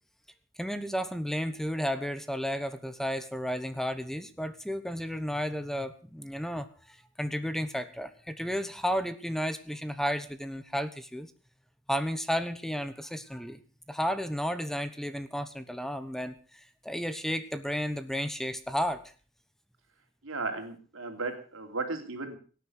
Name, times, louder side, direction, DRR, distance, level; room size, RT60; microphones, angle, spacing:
voice 1, 0.6-11.3 11.9-13.6 13.9-19.0, equal, ahead, 11 dB, 1.0 m, -33 dB
voice 2, 20.2-22.4, right 3 dB, 85° right, 5 dB, 3.3 m, -35 dB
18.0 x 9.5 x 6.4 m, 0.39 s
head